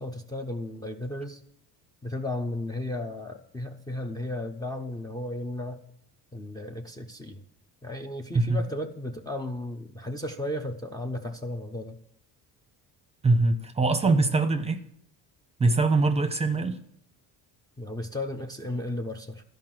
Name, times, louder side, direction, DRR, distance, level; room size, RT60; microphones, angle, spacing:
voice 1, 0.0-1.4 2.0-5.8 6.3-7.4 7.8-12.0 14.0-14.2 17.8-19.4, left 1 dB, 10° left, 1 dB, 0.7 m, -34 dB
voice 2, 13.2-14.8 15.6-16.8, right 3 dB, 15° right, 9 dB, 0.9 m, -23 dB
12.0 x 5.3 x 7.7 m, 0.69 s
cardioid pair, 105°, 38 cm